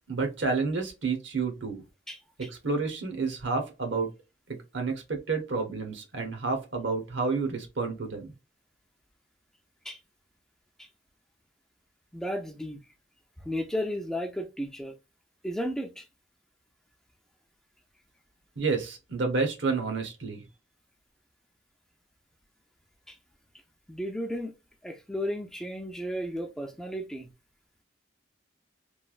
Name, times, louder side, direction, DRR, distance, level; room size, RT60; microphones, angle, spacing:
voice 1, 0.1-1.8 2.4-4.1 4.5-8.3 18.6-20.4, right 4 dB, 65° right, 0.9 m, -30 dB
voice 2, 2.1-2.5 9.8-10.0 10.8-10.9 12.1-12.9 13.4-14.9 15.4-16.1 23.1-23.2 23.9-24.5 24.8-27.3, equal, 5° left, 0.4 m, -34 dB
3.2 x 2.3 x 2.4 m
head